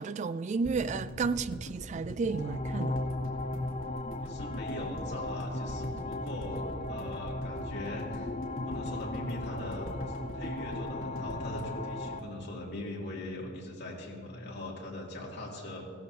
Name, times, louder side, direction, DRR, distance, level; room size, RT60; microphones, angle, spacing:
voice 1, 0.0-3.0, right 4 dB, 35° right, 0.3 m, -32 dB
sound 1, 0.6-12.8 13.1-13.2 13.4-13.5, left 1 dB, 80° left, 2.0 m, -41 dB
sound 2, 2.2-12.2, left 2 dB, 30° left, 0.5 m, -37 dB
voice 2, 4.2-8.3 8.7-9.9 10.3-15.8, left 1 dB, 55° left, 2.5 m, -41 dB
16.5 x 13.5 x 2.8 m
head